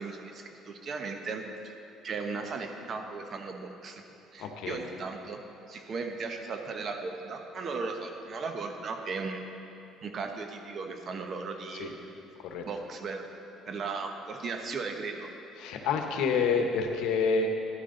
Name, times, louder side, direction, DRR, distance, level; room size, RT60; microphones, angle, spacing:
voice 1, 0.0-1.7 2.0-4.0 4.3-5.4 5.7-9.4 10.0-12.1 12.7-13.3 13.7-15.3, right 4 dB, 50° right, 4 dB, 1.1 m, -36 dB
voice 2, 4.4-4.8 11.8-11.9 12.4-12.6 15.6-17.5, left 5 dB, 75° left, 4 dB, 1.0 m, -28 dB
11.5 x 10.5 x 3.9 m, 3.0 s
supercardioid pair, 85°, 0 cm